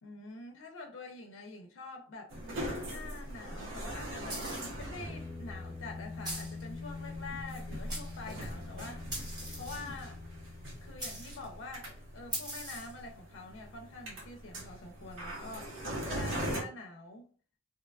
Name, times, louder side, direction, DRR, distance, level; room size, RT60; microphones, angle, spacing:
voice 1, 0.0-2.4 2.8-9.2 9.5-10.2 10.8-15.8 16.0-17.3, left 3 dB, 90° left, 0.5 m, -46 dB
sound 1, 2.3-16.6, equal, 85° right, 0.8 m, -41 dB
sound 2, 4.2-11.6, left 3 dB, ahead, 0.5 m, -46 dB
sound 3, 4.3-4.8 6.2-6.6 7.5-7.6 7.9-8.5 9.1-10.0 11.0-11.5 12.3-13.0, right 1 dB, 20° right, 0.9 m, -41 dB
2.8 x 2.2 x 2.3 m
head